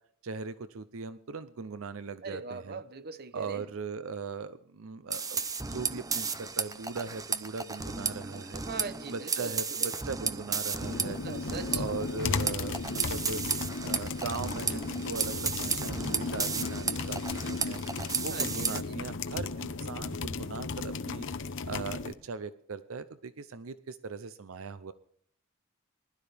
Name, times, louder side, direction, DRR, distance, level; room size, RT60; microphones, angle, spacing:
voice 1, 0.2-2.8 3.3-5.4 5.7-8.6 9.1-11.2 11.7-13.5 13.8-17.8 18.2-21.3 21.7-24.9, right 4 dB, 75° right, 0.6 m, -39 dB
voice 2, 2.2-3.6 8.7-10.0 11.0-11.8 18.3-19.0, right 4 dB, 50° right, 0.9 m, -41 dB
sound 1, 5.1-18.8, right 5 dB, 15° right, 0.7 m, -34 dB
sound 2, 10.8-22.1, left 4 dB, 60° left, 0.9 m, -35 dB
20.5 x 12.0 x 3.4 m
head